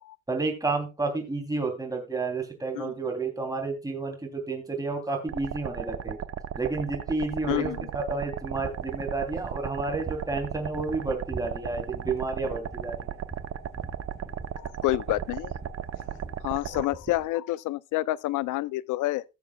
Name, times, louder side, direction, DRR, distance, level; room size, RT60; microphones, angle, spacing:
voice 1, 0.3-6.2 6.6-13.1, right 3 dB, 10° right, 3.1 m, -31 dB
sound 1, 5.3-16.9, right 9 dB, 55° right, 0.9 m, -36 dB
voice 2, 7.5-7.9 14.6-15.5 16.4-19.2, left 17 dB, 90° left, 0.6 m, -28 dB
sound 2, 8.5-17.2, right 3 dB, 35° right, 4.0 m, -45 dB
17.5 x 7.2 x 2.3 m
cardioid pair, 90°, 30 cm